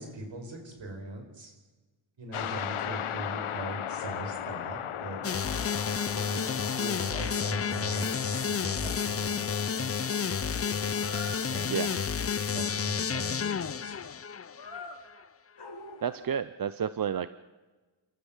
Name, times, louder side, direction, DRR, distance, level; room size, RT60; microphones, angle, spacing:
voice 1, 0.0-1.5 2.2-5.4 6.1-10.5 11.2-11.9 12.5-14.1, right 2 dB, 65° right, 4 dB, 5.5 m, -41 dB
sound 1, 2.3-11.7, left 10 dB, 80° left, 1.1 m, -38 dB
sound 2, 4.9-5.0 5.3-6.2 6.6-7.4 10.9-11.5 14.5-15.0 15.6-16.4, left 2 dB, 50° left, 4.9 m, -45 dB
sound 3, 5.2-14.9, left 6 dB, 30° left, 0.6 m, -31 dB
voice 2, 11.7-12.0 16.0-17.3, right 8 dB, 45° right, 14 dB, 0.7 m, -31 dB
29.5 x 13.5 x 7.3 m, 1.3 s
wide cardioid pair, 115°, 49 cm